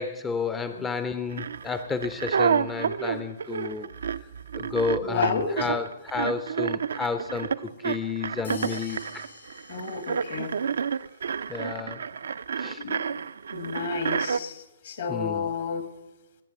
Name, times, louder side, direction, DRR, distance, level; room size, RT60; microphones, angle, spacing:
voice 1, 0.0-3.9 4.2-4.3 4.5-9.2 11.5-12.0 12.6-12.8 15.1-15.5, left 4 dB, 10° left, 10 dB, 0.5 m, -31 dB
sound 1, 1.3-14.4, right 7 dB, 65° right, 0.4 m, -30 dB
voice 2, 5.0-5.7 9.7-10.5 12.8-13.1 13.5-15.9, left 5 dB, 55° left, 9 dB, 1.7 m, -31 dB
sound 2, 8.4-10.7, left 3 dB, 75° left, 3.6 m, -46 dB
20.0 x 7.8 x 6.5 m, 1.0 s
figure-of-eight pair, 120°, 0 cm